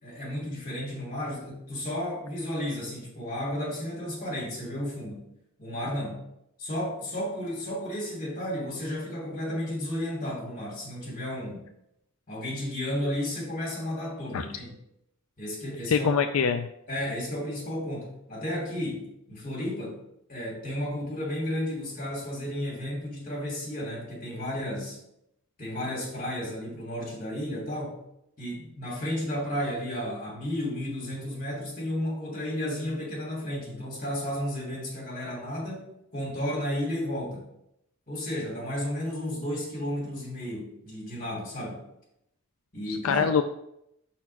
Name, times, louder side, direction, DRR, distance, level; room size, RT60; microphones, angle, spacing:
voice 1, 0.0-5.3 5.6-6.2 6.6-11.7 12.3-14.7 15.4-16.1 16.9-20.0 20.3-25.0 25.6-28.0 28.4-37.5 38.1-41.9 42.7-43.3, left 1 dB, 40° left, -3 dB, 3.0 m, -33 dB
voice 2, 15.9-16.7 42.9-43.4, left 6 dB, 80° left, 8 dB, 0.4 m, -24 dB
5.8 x 4.4 x 5.8 m, 0.79 s
head